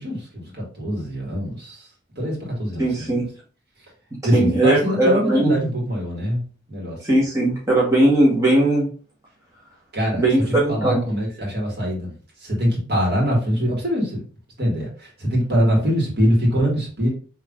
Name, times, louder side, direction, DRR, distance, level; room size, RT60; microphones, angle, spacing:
voice 1, 0.0-1.9 2.2-3.3 4.2-6.4 6.7-7.2 9.9-10.2 10.7-12.1 12.4-14.2 14.6-17.1, equal, 55° right, -2 dB, 2.0 m, -23 dB
voice 2, 2.8-3.3 4.3-5.5 7.0-8.9 10.1-11.1, right 1 dB, 15° right, -5 dB, 1.2 m, -18 dB
5.4 x 3.2 x 2.5 m, 0.40 s
head